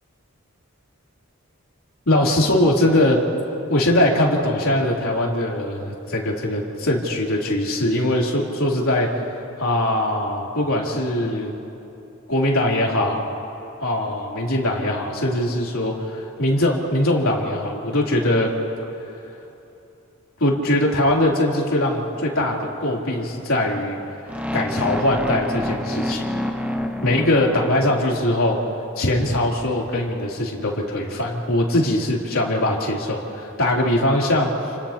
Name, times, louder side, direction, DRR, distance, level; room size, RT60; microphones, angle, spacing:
voice 1, 2.1-3.2 3.7-9.1 9.6-11.5 12.3-13.3 13.8-18.5 20.4-24.0 24.5-26.2 27.0-28.6 29.0-34.7, left 1 dB, 85° left, -3 dB, 3.3 m, -21 dB
sound 1, 24.3-28.4, left 1 dB, 5° right, 0.9 m, -28 dB
30.0 x 30.0 x 2.9 m, 2.9 s
head